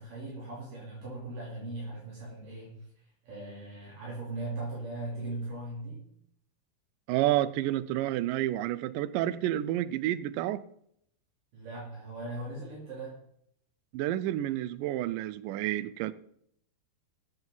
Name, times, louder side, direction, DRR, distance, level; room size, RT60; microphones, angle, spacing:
voice 1, 0.0-2.7 3.2-6.0 11.5-13.2, right 2 dB, 65° right, 4.7 m, -39 dB
voice 2, 7.1-10.6 13.9-16.1, right 13 dB, 80° right, 2.1 m, -30 dB
20.5 x 7.8 x 4.0 m
omnidirectional pair, 4.2 m